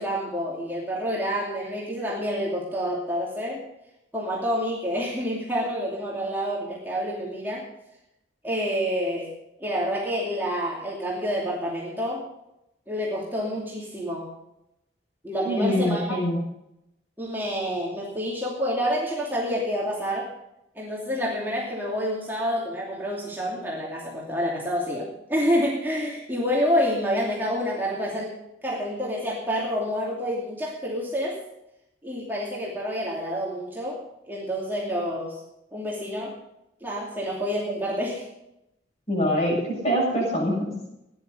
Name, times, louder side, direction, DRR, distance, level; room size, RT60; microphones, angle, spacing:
voice 1, 0.0-3.6 4.1-7.6 8.4-9.3 9.6-12.2 12.9-14.3 15.2-16.2 17.2-20.3 20.7-31.4 32.0-34.0 34.3-35.4 35.7-36.3 36.8-38.3, equal, 10° right, -5 dB, 2.7 m, -28 dB
voice 2, 15.4-16.4 39.1-39.6 39.8-40.5, equal, 35° left, -3 dB, 6.7 m, -23 dB
16.5 x 10.5 x 5.5 m, 0.86 s
head